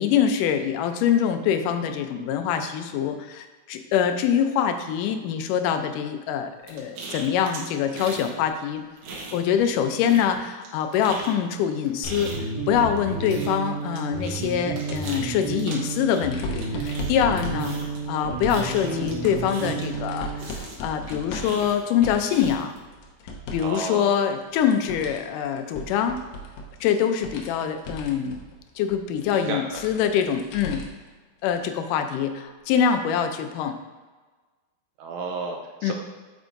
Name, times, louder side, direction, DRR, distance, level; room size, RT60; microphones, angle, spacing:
voice 1, 0.0-8.8 9.3-12.3 12.7-22.8 23.5-26.2 26.8-28.4 28.8-30.8 31.4-33.8 35.8-35.9, left 8 dB, 90° left, 7 dB, 2.2 m, -24 dB
sound 1, 6.7-8.3 8.6-9.8 10.0-20.0 20.4-22.8, right 3 dB, 65° right, 2.0 m, -39 dB
sound 2, 12.0-20.5, right 3 dB, 35° right, 2.4 m, -31 dB
sound 3, 15.3-23.8 24.1-31.1 31.5-31.6 32.8-32.9, left 1 dB, 75° left, 2.0 m, -38 dB
voice 2, 23.6-24.2 29.3-29.8 35.0-35.9, right 3 dB, 80° right, 2 dB, 1.7 m, -32 dB
8.2 x 6.1 x 2.5 m, 1.3 s
omnidirectional pair, 3.6 m